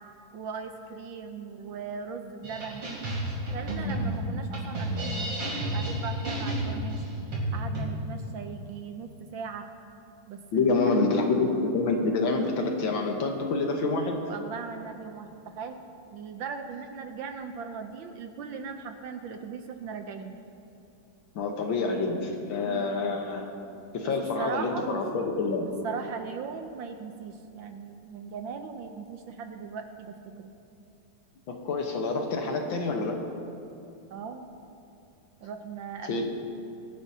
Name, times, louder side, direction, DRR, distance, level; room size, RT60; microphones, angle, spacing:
voice 1, 0.3-2.8 3.5-7.0 7.5-9.6 10.3-11.0 14.3-15.8 16.1-20.3 22.6-22.9 24.0-24.9 25.6-30.5 34.1-34.5 35.4-36.3, right 6 dB, 70° right, 6 dB, 1.3 m, -39 dB
sound 1, 2.4-7.9, right 1 dB, 90° right, 4.1 m, -31 dB
voice 2, 10.5-14.2 21.4-23.5 23.9-25.7 31.5-33.2 36.1-36.2, left 3 dB, 65° left, 2 dB, 1.8 m, -27 dB
23.5 x 10.0 x 2.8 m, 2.7 s
omnidirectional pair, 2.4 m